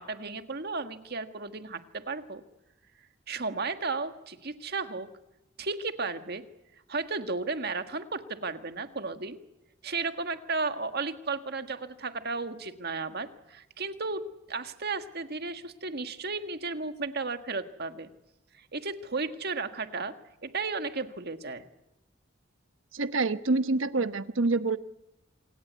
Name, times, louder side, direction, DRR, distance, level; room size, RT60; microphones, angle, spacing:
voice 1, 0.0-2.4 3.3-5.1 5.6-6.4 6.9-9.4 9.8-14.2 14.5-18.1 18.5-20.1 20.4-21.6, right 4 dB, 50° right, 8 dB, 1.7 m, -34 dB
voice 2, 22.9-24.8, right 3 dB, 75° right, 12 dB, 1.1 m, -26 dB
27.0 x 18.0 x 8.2 m, 0.95 s
head